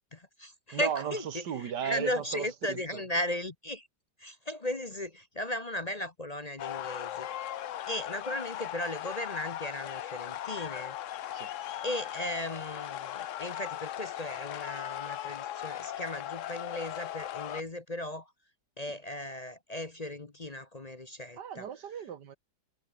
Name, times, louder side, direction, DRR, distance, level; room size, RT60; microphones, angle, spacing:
voice 1, 0.0-3.9 4.2-7.5 7.9-11.0 11.8-18.3 18.8-21.7, left 1 dB, 25° left, 1.0 m, -36 dB
voice 2, 0.7-3.0 11.3-11.5 18.8-18.9 21.4-22.4, right 8 dB, 85° right, 2.0 m, -36 dB
sound 1, 6.6-17.6, left 12 dB, 65° left, 0.9 m, -38 dB
omnidirectional pair, 1.8 m